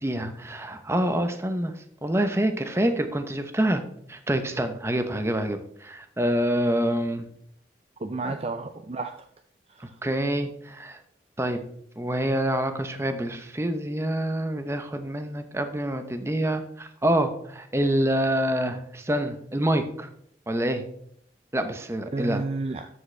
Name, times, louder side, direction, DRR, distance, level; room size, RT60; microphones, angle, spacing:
voice 1, 0.0-1.7 2.0-3.8 4.1-7.3 8.2-8.3 9.8-11.0 11.4-11.6 12.0-20.1 20.5-20.8 21.5-22.4, right 1 dB, 15° right, 8 dB, 0.8 m, -26 dB
voice 2, 8.0-9.3 9.7-9.9 22.1-22.9, right 3 dB, 35° right, 8 dB, 0.4 m, -32 dB
12.5 x 7.6 x 3.3 m, 0.69 s
head